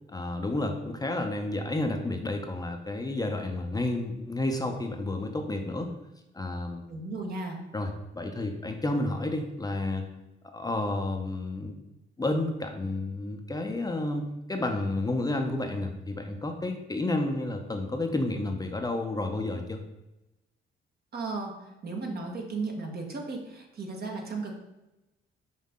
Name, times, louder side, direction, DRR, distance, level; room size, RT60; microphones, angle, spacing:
voice 1, 0.1-5.9 6.3-6.8 7.7-10.0 10.5-11.8 12.2-19.8, left 2 dB, 20° left, 3 dB, 0.7 m, -31 dB
voice 2, 6.9-7.6 21.1-21.5 21.8-24.5, right 3 dB, 50° right, 1 dB, 1.5 m, -35 dB
5.6 x 5.2 x 3.7 m, 0.96 s
cardioid pair, 90°, 20 cm